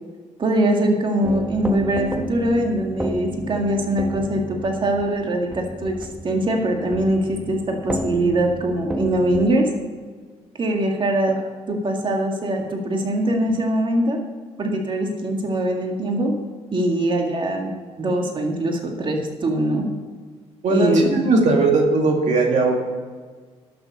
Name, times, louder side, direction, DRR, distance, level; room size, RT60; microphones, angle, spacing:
voice 1, 0.4-9.7 10.6-11.4 11.7-14.2 14.6-16.4 16.7-19.8 20.7-21.2, right 1 dB, 40° right, 2 dB, 2.0 m, -22 dB
sound 1, 1.2-9.5, equal, 10° right, 1.1 m, -31 dB
voice 2, 20.6-22.8, right 3 dB, 70° right, 1 dB, 1.9 m, -18 dB
11.5 x 6.8 x 6.9 m, 1.5 s
cardioid pair, 85°, 12 cm